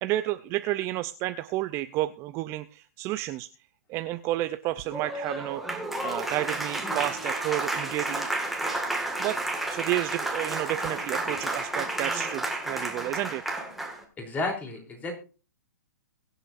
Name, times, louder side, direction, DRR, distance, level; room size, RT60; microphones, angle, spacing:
voice 1, 0.0-3.5 3.9-5.6 6.0-8.3 9.2-9.4 9.7-13.4, right 16 dB, 25° right, 11 dB, 0.5 m, -31 dB
Applause, 4.8-14.0, right 2 dB, ahead, 1.8 m, -31 dB
voice 2, 14.2-15.1, left 2 dB, 15° left, 2 dB, 3.3 m, -32 dB
23.0 x 8.0 x 2.5 m, 0.35 s
hypercardioid pair, 145°, 11 cm